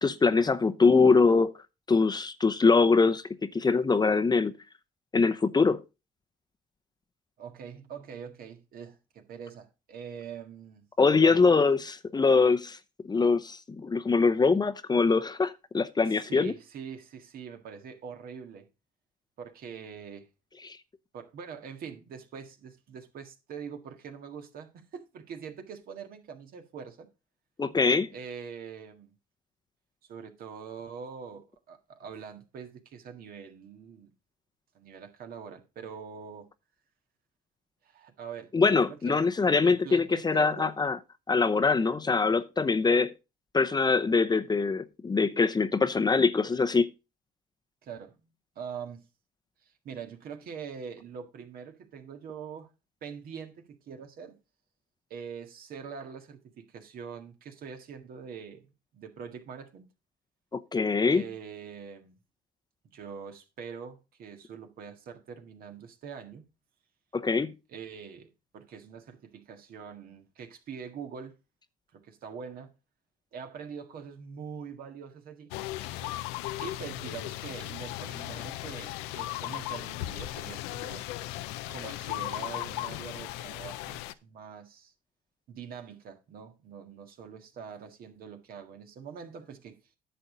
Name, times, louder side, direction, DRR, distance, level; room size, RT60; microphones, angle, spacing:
voice 1, 0.0-1.5 1.9-4.5 5.1-5.8 11.0-12.8 13.0-16.5 20.6-20.8 27.6-28.1 38.5-41.0 41.3-43.1 43.5-46.9 60.5-61.2 67.1-67.5, left 4 dB, 25° left, 0.7 m, -23 dB
voice 2, 7.4-10.8 11.2-11.4 16.0-18.7 19.4-20.3 21.1-27.1 28.1-29.1 30.1-34.1 34.7-36.5 37.8-38.5 38.9-39.2 39.6-40.8 47.8-48.3 48.6-49.0 49.6-52.7 53.0-54.4 55.1-59.9 61.1-62.2 62.9-66.4 67.7-71.4 71.9-72.7 73.3-75.5 76.0-76.1 76.6-81.1 81.7-84.9 85.5-89.8, right 6 dB, 60° right, 1.8 m, -43 dB
sound 1, 75.5-84.1, left 16 dB, 80° left, 0.5 m, -37 dB
10.0 x 6.7 x 3.9 m
supercardioid pair, 65°, 17 cm